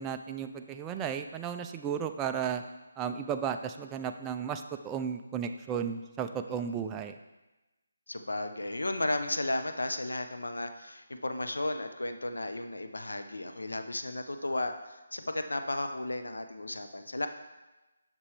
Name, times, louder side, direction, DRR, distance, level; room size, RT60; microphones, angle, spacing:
voice 1, 0.0-2.6 3.0-7.2, right 7 dB, 15° right, 6 dB, 0.3 m, -34 dB
voice 2, 8.1-17.3, left 2 dB, 90° left, 7 dB, 0.6 m, -34 dB
7.2 x 6.0 x 3.3 m, 1.1 s
figure-of-eight pair, 160°, 0 cm